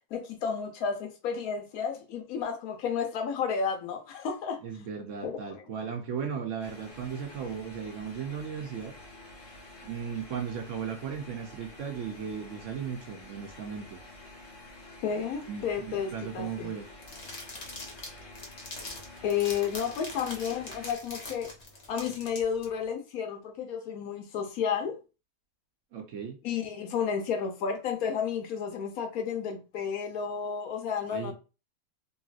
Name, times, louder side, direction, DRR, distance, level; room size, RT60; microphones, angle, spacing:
voice 1, 0.1-4.6 5.2-5.6 15.0-16.7 19.2-21.5 21.9-25.0 26.4-31.3, left 7 dB, 75° left, 1.1 m, -32 dB
voice 2, 4.6-8.9 9.8-14.0 15.5-16.9 25.9-26.4 31.1-31.3, right 7 dB, 65° right, 0.8 m, -36 dB
sound 1, 6.6-20.9, left 2 dB, 55° left, 1.4 m, -49 dB
sound 2, 17.0-22.6, left 2 dB, 35° left, 0.7 m, -43 dB
3.0 x 2.7 x 2.4 m
omnidirectional pair, 1.6 m